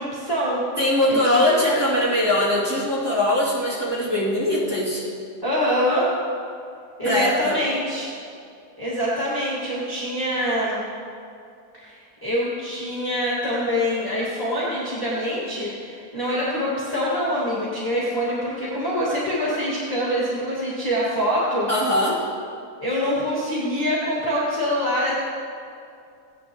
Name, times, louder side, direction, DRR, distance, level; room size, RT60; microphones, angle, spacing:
voice 1, 0.0-0.6 1.1-1.4 5.4-6.1 7.0-8.1 8.8-10.8 11.7-21.7 22.8-25.1, equal, 15° left, -8 dB, 1.8 m, -25 dB
voice 2, 0.8-5.1 7.0-7.6 21.7-22.3, left 1 dB, 15° right, -9 dB, 2.6 m, -21 dB
16.5 x 10.0 x 3.0 m, 2.5 s
omnidirectional pair, 1.7 m